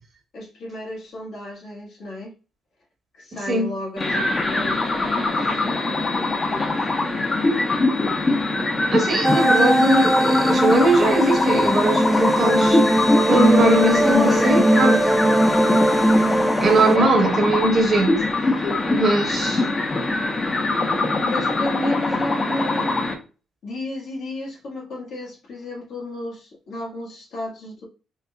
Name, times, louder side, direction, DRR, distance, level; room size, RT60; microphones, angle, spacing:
voice 1, 0.3-2.3 3.1-6.9 7.5-7.7 8.2-8.7 8.9-9.5 14.0-16.7 16.9-17.1 21.2-23.1 23.6-27.8, left 2 dB, 75° left, 1.5 m, -32 dB
sound 1, 4.0-23.1, left 2 dB, 30° left, 0.8 m, -23 dB
voice 2, 8.9-12.8 13.3-15.0 16.6-18.2 18.9-19.6, right 2 dB, 45° right, 1.1 m, -20 dB
sound 2, 9.2-17.0, right 1 dB, ahead, 0.3 m, -19 dB
4.0 x 2.8 x 2.2 m
cardioid pair, 90°, 0 cm